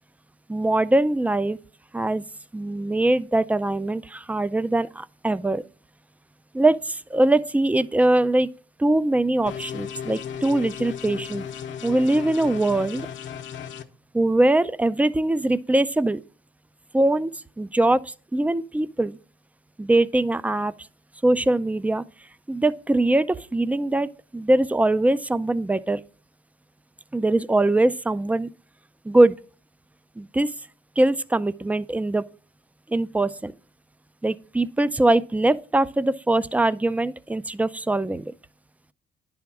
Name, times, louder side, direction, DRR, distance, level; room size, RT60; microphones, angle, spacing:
voice 1, 0.5-1.6 1.9-2.2 2.5-5.6 6.5-8.5 8.8-11.4 11.8-13.1 14.1-16.2 16.9-17.3 17.6-18.0 18.3-19.1 19.8-20.7 21.2-22.0 22.5-26.0 27.1-28.5 29.1-29.3 30.2-30.5 31.0-32.2 32.9-33.5 34.2-38.3, right 2 dB, 5° right, 0.3 m, -22 dB
sound 1, 9.5-13.8, left 8 dB, 70° left, 0.8 m, -35 dB
10.5 x 3.5 x 6.0 m
cardioid pair, 90°, 20 cm